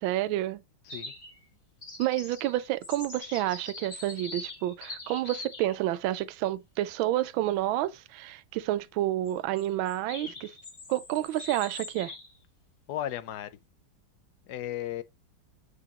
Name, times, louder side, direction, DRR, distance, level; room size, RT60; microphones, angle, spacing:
voice 1, 0.0-0.6 2.0-10.5 10.9-12.1, right 14 dB, 85° right, 1.4 m, -29 dB
sound 1, 0.9-1.4 1.8-5.7 9.3-12.4, left 2 dB, 25° left, 2.1 m, -43 dB
voice 2, 12.9-13.6 14.5-15.0, left 12 dB, 65° left, 1.1 m, -35 dB
7.6 x 4.8 x 2.9 m
omnidirectional pair, 2.1 m